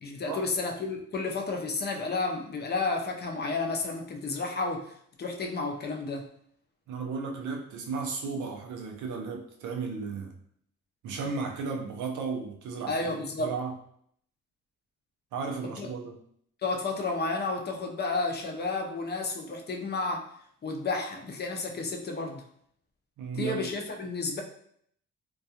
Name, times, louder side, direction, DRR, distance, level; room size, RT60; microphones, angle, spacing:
voice 1, 0.0-6.3 12.9-13.5 15.6-15.9 16.6-20.4 20.6-22.4 23.3-24.4, left 3 dB, 35° left, 3 dB, 0.5 m, -32 dB
voice 2, 6.9-10.3 11.0-13.8 15.3-16.2 23.2-23.6, right 4 dB, 75° right, 2 dB, 0.6 m, -34 dB
2.3 x 2.3 x 2.7 m, 0.65 s
cardioid pair, 90°, 30 cm